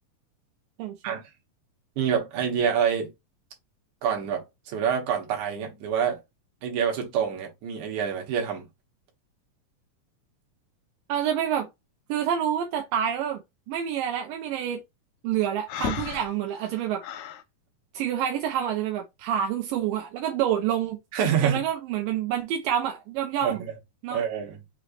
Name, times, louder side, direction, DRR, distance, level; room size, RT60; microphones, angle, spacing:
voice 1, 0.8-1.1 11.1-11.7 12.1-13.4 13.7-14.8 15.2-17.0 17.9-21.0 21.4-23.6 24.0-24.2, right 9 dB, 80° right, 2.4 m, -27 dB
voice 2, 2.0-3.1 4.0-6.2 6.6-8.7 21.1-21.6 23.4-23.5 24.1-24.6, right 8 dB, 65° right, 2.7 m, -26 dB
Breathing, 15.7-17.4, left 9 dB, 85° left, 1.6 m, -34 dB
6.0 x 3.3 x 2.5 m
omnidirectional pair, 4.0 m